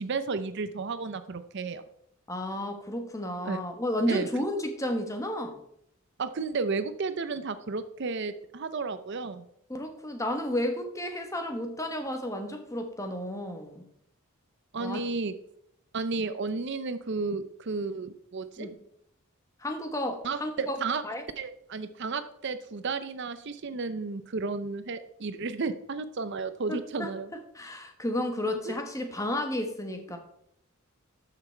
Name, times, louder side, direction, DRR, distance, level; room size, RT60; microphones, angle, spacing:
voice 1, 0.0-1.8 3.4-3.6 4.1-4.4 6.2-9.4 14.7-15.4 15.9-18.7 20.2-21.0 21.4-27.3 28.7-28.8, right 4 dB, 55° right, 12 dB, 0.6 m, -33 dB
voice 2, 2.3-5.6 9.7-13.9 14.8-15.0 18.6-18.7 19.6-20.8 21.0-21.2 26.7-30.2, left 1 dB, 15° left, 5 dB, 1.2 m, -32 dB
13.0 x 5.9 x 4.4 m, 0.74 s
head